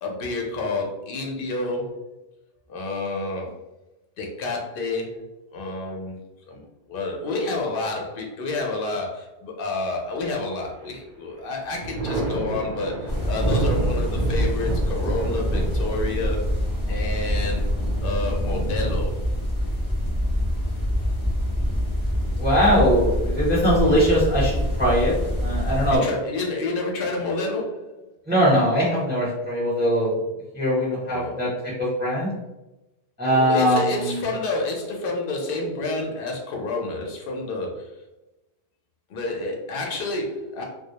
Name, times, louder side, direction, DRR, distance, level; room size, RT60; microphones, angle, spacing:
voice 1, 0.0-2.1 2.7-3.5 4.2-6.1 6.5-16.4 16.9-17.7 18.0-19.1 25.6-28.1 31.0-31.4 33.3-38.0 39.1-40.6, left 2 dB, 60° left, 0 dB, 0.7 m, -29 dB
Thunder, 10.2-10.9 11.3-20.9 22.4-23.2, right 2 dB, 50° right, 0.6 m, -31 dB
sound 1, 13.1-26.0, equal, 25° left, 0.5 m, -25 dB
voice 2, 22.4-25.1 25.4-26.0 28.3-30.1 30.5-31.5 31.8-32.3 33.2-34.2, equal, 10° right, -7 dB, 0.7 m, -21 dB
2.2 x 2.0 x 2.8 m, 0.99 s
omnidirectional pair, 1.1 m